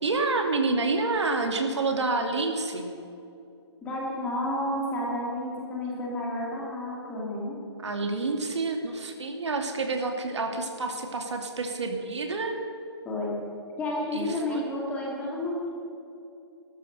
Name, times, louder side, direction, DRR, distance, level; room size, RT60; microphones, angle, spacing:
voice 1, 0.0-2.9 7.8-12.6 14.1-14.6, right 3 dB, 80° right, 4 dB, 2.6 m, -28 dB
voice 2, 3.8-7.6 13.0-13.4 13.8-15.7, left 1 dB, 10° left, -3 dB, 2.4 m, -31 dB
16.5 x 13.5 x 6.7 m, 2.7 s
hypercardioid pair, 165°, 15 cm